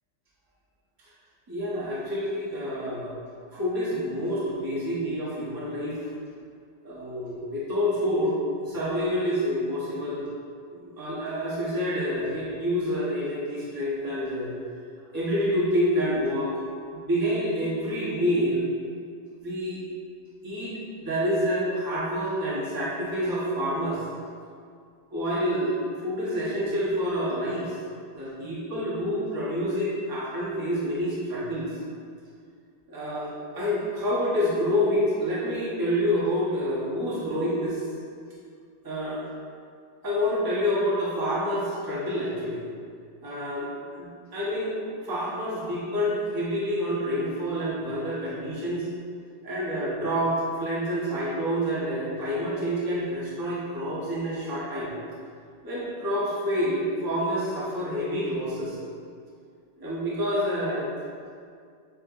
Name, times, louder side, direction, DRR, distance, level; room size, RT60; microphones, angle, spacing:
voice 1, 1.5-3.1 3.5-6.1 6.8-8.3 8.6-10.3 10.7-14.5 15.1-16.5 16.9-18.6 19.4-19.8 20.4-24.0 25.1-27.7 28.1-31.7 32.9-37.8 38.8-39.2 40.0-42.6 43.2-43.7 44.0-44.7 45.0-48.9 49.4-54.9 55.6-58.8 59.8-60.9, equal, 20° right, -8 dB, 0.6 m, -28 dB
7.4 x 2.8 x 2.5 m, 2.2 s
omnidirectional pair, 2.0 m